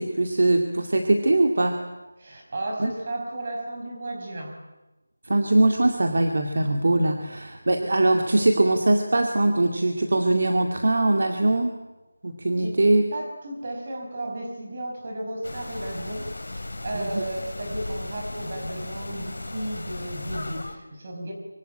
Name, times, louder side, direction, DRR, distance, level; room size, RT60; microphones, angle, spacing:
voice 1, 0.0-1.8 2.8-2.9 5.2-11.8 12.2-13.0 16.9-17.2, right 2 dB, 45° right, 4 dB, 2.3 m, -21 dB
voice 2, 2.2-4.6 12.6-12.8 13.1-21.3, right 1 dB, 25° right, 2 dB, 5.5 m, -34 dB
sound 1, 15.4-20.8, left 2 dB, 70° left, 4.0 m, -36 dB
24.5 x 24.5 x 9.1 m, 1.1 s
figure-of-eight pair, 180°, 0 cm